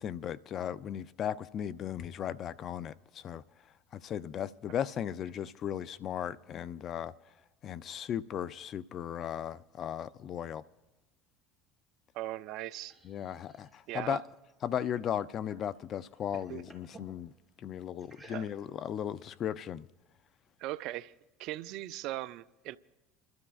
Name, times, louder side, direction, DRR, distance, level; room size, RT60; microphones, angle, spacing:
voice 1, 0.0-3.4 3.9-7.1 7.6-10.6 13.0-14.2 14.6-17.3 17.6-19.9, left 9 dB, 45° left, 0.5 m, -36 dB
voice 2, 12.1-12.9 13.9-14.2 16.5-16.6 18.3-18.5 20.6-21.1 21.4-22.8, right 15 dB, 65° right, 0.5 m, -39 dB
sound 1, 12.6-15.8 16.1-17.1 18.0-18.9, right 1 dB, ahead, 4.9 m, -57 dB
30.0 x 12.5 x 2.5 m
hypercardioid pair, 80°, 0 cm